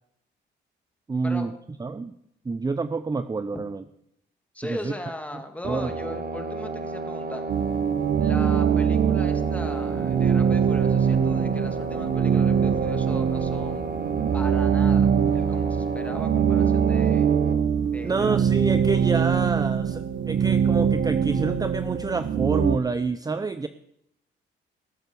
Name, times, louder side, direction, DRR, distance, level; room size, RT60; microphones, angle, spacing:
voice 1, 1.1-1.5 1.8-2.2 2.4-3.8 4.6-4.9 5.7-5.9 18.0-23.7, right 4 dB, 20° right, 11 dB, 0.6 m, -27 dB
voice 2, 4.5-7.4 8.2-13.8 14.3-17.3 17.9-18.4, left 1 dB, 5° left, 6 dB, 2.0 m, -38 dB
sound 1, 5.6-17.5, right 3 dB, 50° right, 1.7 m, -32 dB
sound 2, 7.5-22.8, right 7 dB, 65° right, 1.1 m, -23 dB
18.0 x 7.8 x 6.9 m, 0.76 s
cardioid pair, 90°, 20 cm